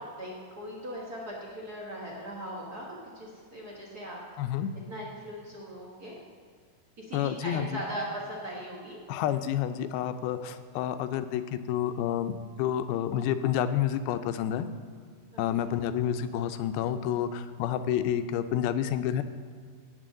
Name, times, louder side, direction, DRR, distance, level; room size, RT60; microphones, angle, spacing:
voice 1, 0.0-4.2 4.9-6.2 7.0-9.0 15.3-15.7, equal, 55° right, -3 dB, 1.0 m, -39 dB
voice 2, 4.4-4.7 7.1-7.8 9.1-14.7 15.4-19.2, left 10 dB, 85° left, 10 dB, 2.4 m, -29 dB
16.5 x 8.3 x 3.8 m, 2.1 s
omnidirectional pair, 4.4 m